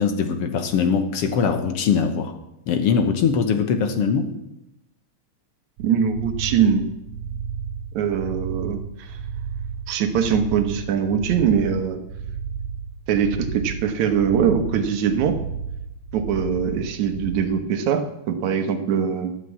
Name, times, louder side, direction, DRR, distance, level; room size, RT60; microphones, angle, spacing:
voice 1, 0.0-2.3 2.7-4.3, left 6 dB, 65° left, 8 dB, 1.6 m, -21 dB
voice 2, 5.8-6.8 7.9-9.2 9.9-12.0 13.1-15.4 16.1-19.3, right 7 dB, 70° right, 7 dB, 2.4 m, -22 dB
sound 1, 5.8-17.4, right 7 dB, 85° right, 2.3 m, -32 dB
12.5 x 8.4 x 8.2 m, 0.87 s
omnidirectional pair, 3.6 m